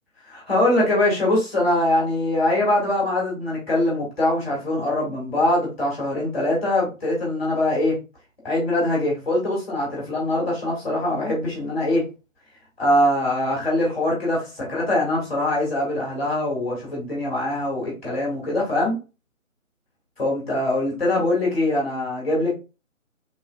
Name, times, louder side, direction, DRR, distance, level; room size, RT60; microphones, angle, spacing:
voice 1, 0.2-8.0 8.4-12.1 12.8-19.0 20.2-22.5, left 1 dB, ahead, -3 dB, 1.4 m, -23 dB
3.1 x 2.6 x 2.3 m, 0.30 s
figure-of-eight pair, 155°, 41 cm